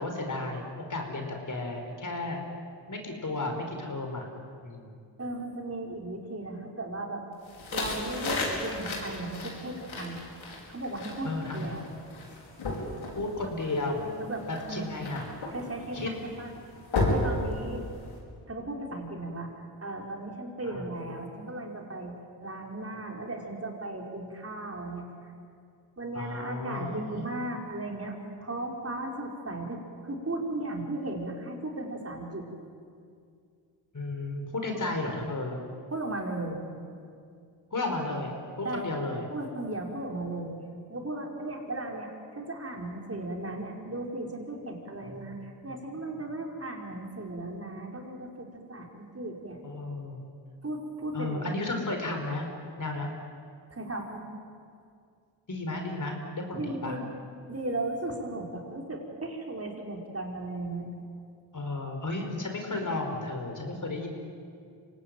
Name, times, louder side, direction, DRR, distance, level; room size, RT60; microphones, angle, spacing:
voice 1, 0.0-2.4 2.9-4.3 4.6-4.9 11.2-11.7 13.1-14.1 14.5-15.3 15.9-16.1 20.6-20.8 26.1-27.2 33.9-35.6 37.7-38.3 38.6-39.3 45.0-45.3 46.1-46.2 49.6-50.2 51.1-52.5 52.8-53.1 55.5-57.0 61.5-64.1, left 2 dB, 40° left, 3 dB, 4.9 m, -33 dB
voice 2, 5.2-7.2 7.7-10.2 10.7-11.8 14.0-14.9 15.5-16.5 16.9-17.8 18.5-19.5 19.8-22.1 22.4-25.1 26.0-32.5 35.9-36.6 38.6-38.9 39.3-40.6 40.9-49.6 50.6-51.5 53.7-54.2 56.5-57.1 57.5-60.9, right 2 dB, 30° right, 1 dB, 5.3 m, -36 dB
sound 1, 7.5-18.2, left 2 dB, 75° left, 5.3 m, -34 dB
26.0 x 18.0 x 9.3 m, 2.3 s
cardioid pair, 60°, 47 cm